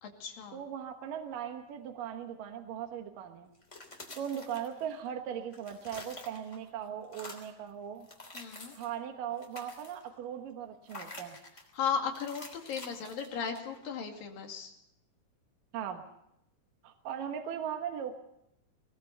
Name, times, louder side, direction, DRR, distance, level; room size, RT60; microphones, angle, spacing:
voice 1, 0.0-0.6 8.3-8.8 11.7-14.7, left 6 dB, 80° left, 3 dB, 4.1 m, -36 dB
voice 2, 0.5-3.5 4.2-8.1 8.7-11.4 15.7-16.0 16.8-18.2, right 9 dB, 75° right, 5 dB, 2.9 m, -39 dB
sound 1, 3.5-5.1 5.4-6.7 7.0-7.6 8.0-9.0 9.3-10.1 10.9-11.7 12.1-13.8, left 2 dB, 20° left, 3.3 m, -48 dB
20.5 x 20.0 x 6.8 m, 0.80 s
omnidirectional pair, 3.9 m